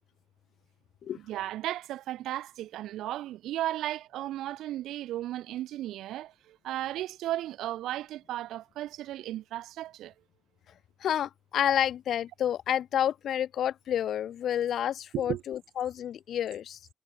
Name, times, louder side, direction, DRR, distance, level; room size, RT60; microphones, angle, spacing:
voice 1, 1.1-10.1 15.1-15.4, right 14 dB, 85° right, 2.0 m, -35 dB
voice 2, 11.0-16.8, left 10 dB, 70° left, 0.9 m, -29 dB
cardioid pair, 90°, 0 cm